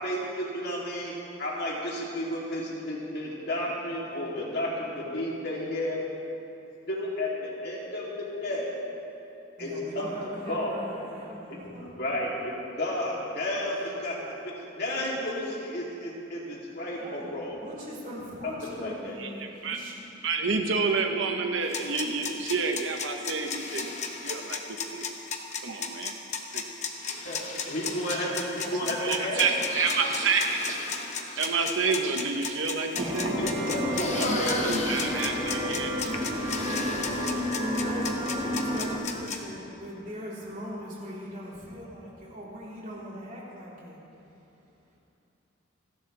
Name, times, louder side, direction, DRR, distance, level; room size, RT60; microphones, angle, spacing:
voice 1, 0.0-6.0 6.9-8.8 9.6-10.7 11.5-17.6 18.4-19.2 27.2-29.5 33.4-34.6, left 1 dB, 50° left, -4 dB, 2.9 m, -32 dB
voice 2, 9.6-11.8 17.0-17.3 17.6-19.9 37.1-37.2 37.6-44.0, equal, 40° right, -6 dB, 3.8 m, -40 dB
voice 3, 19.2-19.8 20.2-25.1 25.6-26.1 26.5-26.6 29.0-30.8 31.4-33.4 34.1-36.1 36.6-36.8, right 4 dB, 65° right, 3 dB, 0.9 m, -29 dB
sound 1, 21.6-39.4, left 5 dB, 35° left, 1.0 m, -34 dB
sound 2, 33.0-39.0, equal, 25° right, 1.5 m, -30 dB
29.0 x 11.0 x 3.4 m, 2.8 s
head